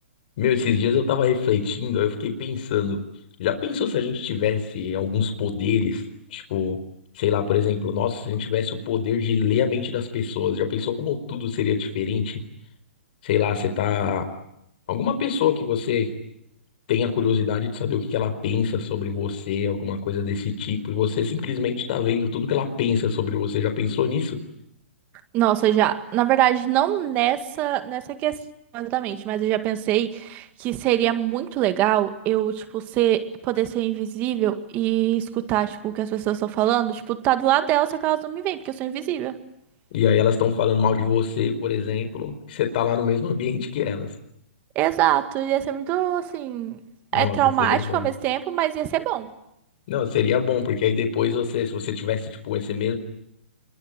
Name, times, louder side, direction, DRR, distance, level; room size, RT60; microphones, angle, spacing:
voice 1, 0.4-3.0 3.4-6.0 6.3-6.8 7.1-12.4 13.2-14.2 14.9-16.1 16.9-24.4 39.9-44.1 47.1-48.1 49.9-53.0, left 7 dB, 45° left, 4.6 m, -24 dB
voice 2, 25.3-28.4 28.7-39.4 44.8-46.8 47.1-49.3, right 13 dB, 25° right, 1.9 m, -23 dB
26.5 x 23.0 x 9.1 m
hypercardioid pair, 155°, 7 cm